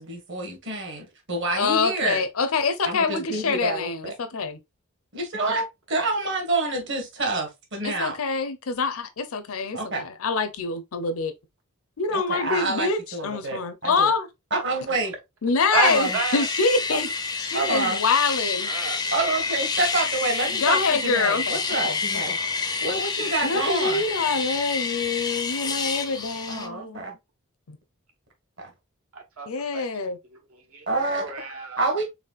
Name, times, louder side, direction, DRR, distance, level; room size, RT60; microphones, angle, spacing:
voice 1, 0.0-2.2 2.9-4.1 5.1-8.2 9.7-10.0 12.1-14.1 14.5-15.1 15.7-16.2 16.9-17.0 17.5-18.0 19.1-22.3 22.8-24.0 26.5-27.1 28.6-28.7 30.9-31.3 31.8-32.0, right 2 dB, 55° right, 1.4 m, -28 dB
voice 2, 1.6-4.6 7.8-11.3 12.0-14.3 15.4-17.1 17.4-18.7 20.5-22.0 22.3-22.4 23.4-27.0 27.7-27.8 29.5-30.2, left 4 dB, 75° left, 0.6 m, -25 dB
voice 3, 15.7-16.5 18.7-19.1 29.1-29.5 29.7-29.9 30.7-30.9 31.2-31.8, right 4 dB, 75° right, 1.2 m, -29 dB
sound 1, 15.8-26.7, left 4 dB, 15° left, 0.4 m, -28 dB
4.1 x 3.6 x 2.4 m
head